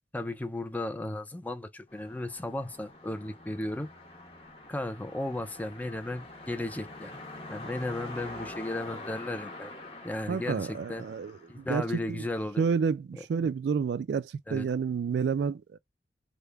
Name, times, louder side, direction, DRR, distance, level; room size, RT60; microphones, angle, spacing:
voice 1, 0.1-3.9 4.7-7.2 7.5-9.7 10.0-11.1 11.5-12.6 13.4-13.5 14.5-14.7, left 1 dB, 10° left, 0.4 m, -35 dB
sound 1, 1.9-12.1, left 2 dB, 30° left, 1.0 m, -45 dB
voice 2, 10.3-12.2 12.6-15.8, right 6 dB, 65° right, 0.3 m, -30 dB
3.5 x 2.1 x 3.3 m
head